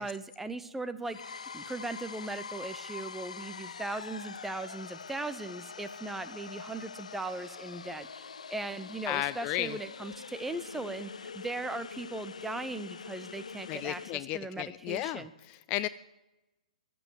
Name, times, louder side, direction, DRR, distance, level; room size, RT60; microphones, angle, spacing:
voice 1, 0.0-15.3, right 2 dB, 5° right, 11 dB, 0.7 m, -38 dB
granny demonic descent, 1.0-14.2, left 5 dB, 70° left, 0.6 m, -44 dB
voice 2, 9.1-9.8 13.7-15.9, left 16 dB, 30° left, 16 dB, 0.3 m, -34 dB
22.5 x 7.8 x 4.7 m, 1.0 s
figure-of-eight pair, 120°, 4 cm